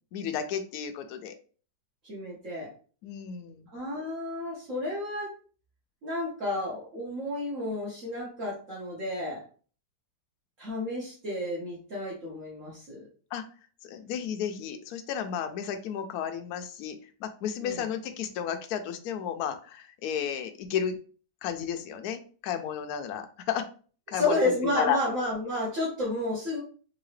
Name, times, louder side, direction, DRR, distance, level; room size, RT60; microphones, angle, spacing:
voice 1, 0.1-1.3 3.0-3.7 13.3-13.4 13.8-21.0 21.4-23.6 24.1-25.0, left 8 dB, 70° left, 6 dB, 1.0 m, -33 dB
voice 2, 2.0-2.7 3.7-5.3 6.0-9.4 10.6-13.0 17.6-17.8 24.1-26.6, left 1 dB, 50° right, -7 dB, 1.5 m, -31 dB
3.8 x 2.8 x 3.1 m, 0.40 s
omnidirectional pair, 1.8 m